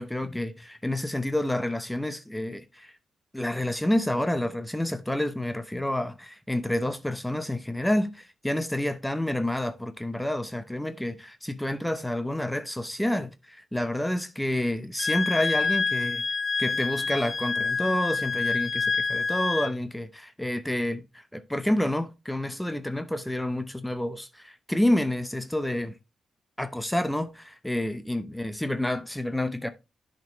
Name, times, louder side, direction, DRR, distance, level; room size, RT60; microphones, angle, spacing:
voice 1, 0.0-2.9 3.3-16.2 16.6-26.0 26.6-29.7, left 1 dB, 5° left, 0.9 m, -29 dB
Wind instrument woodwind instrument, 15.0-19.7, left 4 dB, 45° left, 0.6 m, -27 dB
10.5 x 5.2 x 3.1 m
cardioid pair, 75°, 0 cm